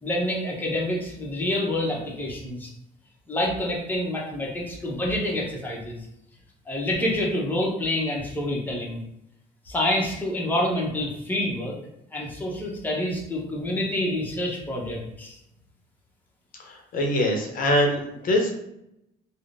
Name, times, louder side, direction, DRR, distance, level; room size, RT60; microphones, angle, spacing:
voice 1, 0.0-2.7 3.3-6.0 6.7-9.0 9.7-11.7 12.1-15.4, left 1 dB, 10° left, -3 dB, 0.8 m, -27 dB
voice 2, 16.5-18.5, left 1 dB, 55° left, 1 dB, 0.7 m, -23 dB
3.5 x 2.1 x 2.5 m, 0.82 s
cardioid pair, 110°, 17 cm